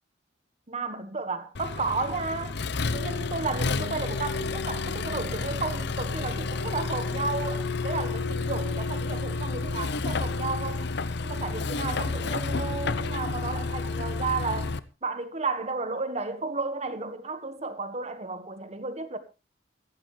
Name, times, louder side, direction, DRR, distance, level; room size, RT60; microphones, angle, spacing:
voice 1, 0.7-2.6 2.9-10.9 11.2-19.2, right 3 dB, 35° right, 1.5 m, -33 dB
Accelerating revving vroom, 1.5-14.8, left 3 dB, 60° left, 0.8 m, -30 dB
16.0 x 14.5 x 3.2 m
head